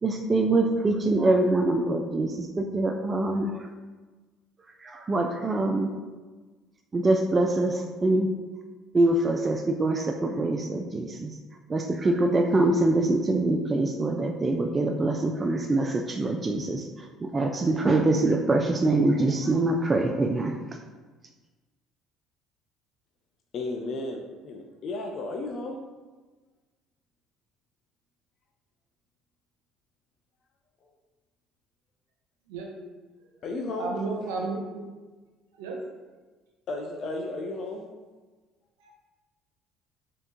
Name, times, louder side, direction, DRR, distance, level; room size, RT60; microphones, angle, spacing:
voice 1, 0.0-3.6 4.8-5.9 6.9-8.3 8.9-11.3 11.7-16.8 17.2-20.6, right 2 dB, 30° right, 2 dB, 0.3 m, -24 dB
voice 2, 23.5-25.8 33.4-33.9 36.7-37.8, left 2 dB, 55° left, 2 dB, 0.4 m, -33 dB
voice 3, 33.8-34.9 35.6-35.8 38.8-38.9, right 3 dB, 90° right, 0 dB, 0.7 m, -32 dB
3.4 x 2.9 x 3.5 m, 1.3 s
supercardioid pair, 80°, 0 cm